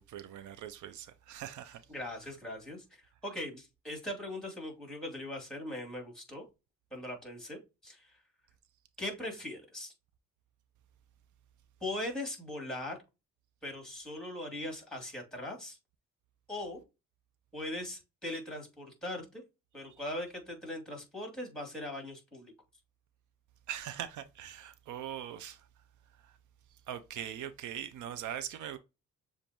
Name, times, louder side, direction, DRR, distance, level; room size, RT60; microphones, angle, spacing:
voice 1, 0.0-1.8 23.7-25.7 26.2-26.4 26.9-28.8, right 10 dB, 75° right, 0.6 m, -41 dB
voice 2, 1.9-6.4 6.9-8.2 9.0-9.9 11.8-13.0 13.6-15.8 16.5-16.8 17.5-19.4 19.7-22.5, left 1 dB, ahead, 2.9 m, -40 dB
7.0 x 2.6 x 3.0 m
cardioid pair, 90°, 30 cm